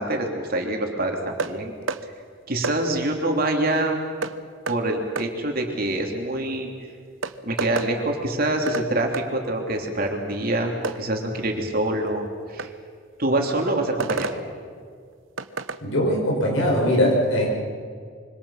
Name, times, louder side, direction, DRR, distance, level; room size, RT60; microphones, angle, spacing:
voice 1, 0.0-1.7 2.5-4.0 4.7-6.7 7.4-12.7 13.2-14.4, right 1 dB, 50° right, 2 dB, 3.1 m, -25 dB
sound 1, 1.4-1.5 1.9-2.0 2.6-2.8 4.2-4.4 4.7-4.8 5.2-5.3 6.7-6.8 7.2-7.9 8.7-8.9 9.1-9.3 10.8-11.0 12.6-12.7 14.0-14.4 15.4-15.8, right 4 dB, 90° right, 1.0 m, -29 dB
voice 2, 15.8-17.5, equal, 85° left, 0 dB, 5.9 m, -21 dB
26.0 x 24.5 x 5.8 m, 2.1 s
head